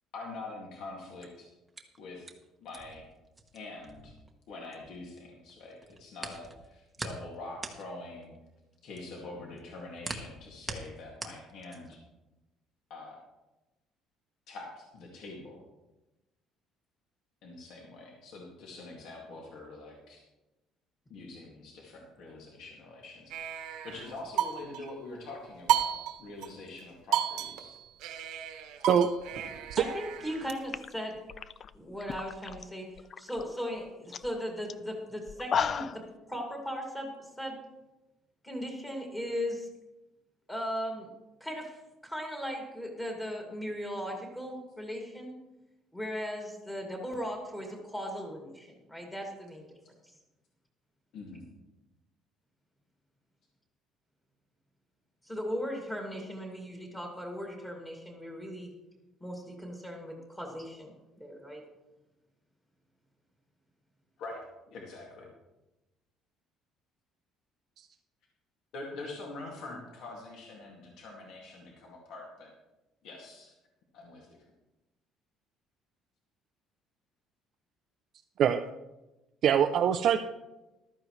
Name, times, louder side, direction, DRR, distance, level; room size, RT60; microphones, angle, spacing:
voice 1, 0.1-1.5 2.0-2.3 2.6-3.1 3.5-4.1 4.5-8.3 8.8-12.0 12.9-13.2 14.5-15.6 17.4-20.2 21.1-23.4 23.8-25.9 26.2-27.8 51.1-51.4 64.2-64.4 64.7-65.3 68.7-72.5 73.0-73.5 73.9-74.4, left 2 dB, 55° left, -1 dB, 2.2 m, -44 dB
sound 1, 1.0-5.2 5.5-12.1, right 3 dB, 10° right, 1.0 m, -43 dB
sound 2, 23.3-24.9 25.7-26.5 26.8-26.9 27.1-30.5, right 10 dB, 75° right, 1.2 m, -33 dB
voice 2, 29.8-31.2 31.7-32.9 33.2-37.6 38.4-39.7 40.5-41.1 41.4-45.3 45.9-49.7 55.2-58.7 59.2-60.9 61.2-61.6, equal, 10° left, 0 dB, 2.2 m, -37 dB
sound 3, 30.2-30.4 30.7-32.6 33.0-33.4 33.8-33.9 34.1-34.3 34.7-34.8 35.3-36.1, left 7 dB, 30° left, 0.3 m, -34 dB
voice 3, 79.4-80.2, right 9 dB, 45° right, 7 dB, 0.4 m, -23 dB
14.5 x 12.5 x 3.2 m, 1.0 s
cardioid pair, 175°, 0 cm